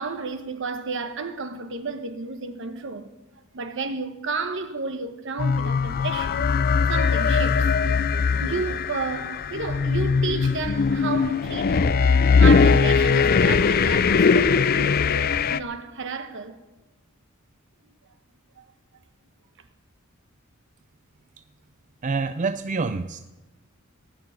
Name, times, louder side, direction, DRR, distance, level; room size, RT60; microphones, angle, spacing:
voice 1, 0.0-3.1 3.5-6.5 6.9-7.7 8.4-12.0 12.4-16.6 18.6-18.7, right 4 dB, 60° right, 1.1 m, -32 dB
sound 1, 5.4-15.6, left 5 dB, 45° left, 0.4 m, -20 dB
voice 2, 22.0-23.2, right 4 dB, 35° right, 0.5 m, -26 dB
19.0 x 6.9 x 9.5 m
head